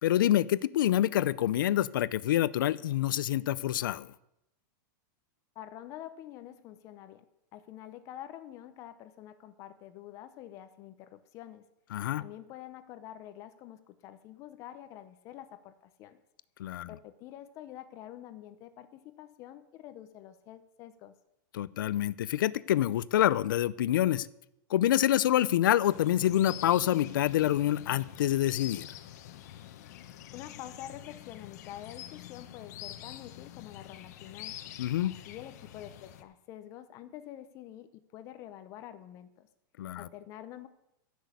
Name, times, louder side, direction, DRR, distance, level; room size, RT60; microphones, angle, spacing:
voice 1, 0.0-4.1 11.9-12.2 16.6-16.9 21.5-24.3 24.7-28.9 34.8-35.1 39.8-40.1, left 12 dB, 75° left, 19 dB, 0.6 m, -27 dB
voice 2, 5.6-11.7 12.2-16.2 16.8-21.1 30.3-34.5 35.0-39.5 39.9-40.7, left 12 dB, 25° left, 11 dB, 0.7 m, -47 dB
sound 1, 25.8-36.2, left 12 dB, 50° left, 1.1 m, -46 dB
15.0 x 6.3 x 8.3 m, 0.83 s
supercardioid pair, 170°, 11 cm